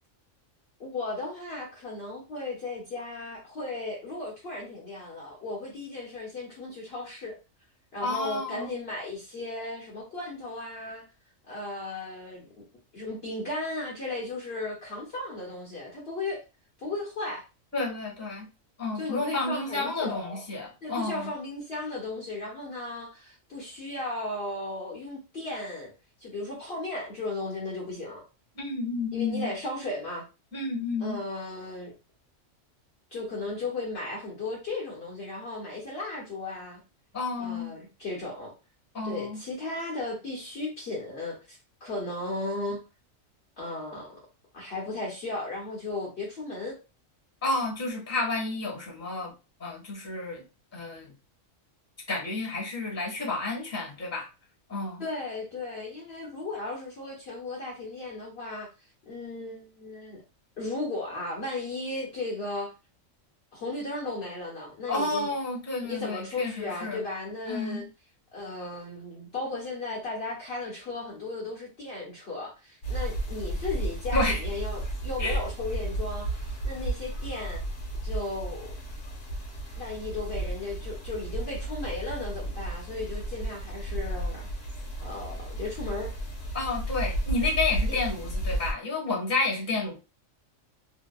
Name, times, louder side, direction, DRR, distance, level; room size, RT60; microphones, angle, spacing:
voice 1, 0.8-7.4 7.9-11.0 11.5-12.6 12.9-16.4 16.8-17.4 19.0-20.4 20.8-25.9 26.2-28.2 29.1-30.3 31.0-31.9 33.1-36.8 37.4-38.5 39.0-42.8 43.6-44.2 44.5-46.8 55.0-58.7 59.1-60.2 60.6-62.7 63.5-65.3 65.8-67.8 68.3-77.6 78.0-78.7 79.8-84.4 85.0-86.1, left 2 dB, 55° left, 1.1 m, -35 dB
voice 2, 8.0-8.8 17.7-18.5 18.8-21.3 28.5-29.5 30.5-31.2 37.1-37.7 38.9-39.4 47.4-49.3 49.6-50.4 50.7-51.1 52.1-54.3 54.7-55.0 64.9-67.0 67.5-67.8 74.1-74.4 75.2-75.4 86.5-89.9, left 3 dB, 15° left, 1.0 m, -30 dB
sound 1, 72.8-88.7, right 1 dB, 75° left, 1.1 m, -33 dB
2.7 x 2.2 x 2.2 m
omnidirectional pair, 1.4 m